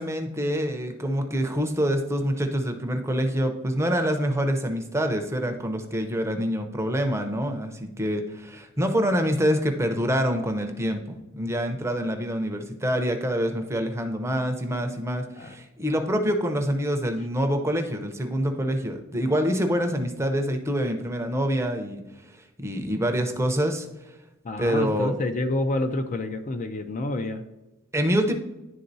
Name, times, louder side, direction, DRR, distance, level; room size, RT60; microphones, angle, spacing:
voice 1, 0.0-22.0 22.6-23.9 24.6-25.1 27.9-28.3, equal, 15° right, 5 dB, 0.6 m, -26 dB
voice 2, 24.4-27.4, left 2 dB, 35° left, 7 dB, 0.4 m, -28 dB
11.0 x 3.7 x 2.7 m, 1.0 s
head